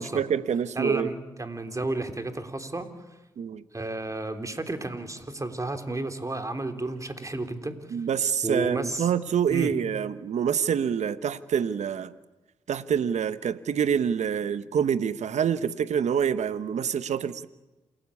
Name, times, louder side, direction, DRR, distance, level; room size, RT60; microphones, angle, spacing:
voice 1, 0.0-1.1 3.4-3.6 7.9-12.1 12.7-17.5, right 8 dB, 70° right, 1.1 m, -26 dB
voice 2, 0.8-2.9 3.7-8.0 8.4-9.1 9.5-9.7, right 2 dB, 25° right, 3.4 m, -32 dB
28.0 x 17.0 x 8.5 m
supercardioid pair, 50°, 12 cm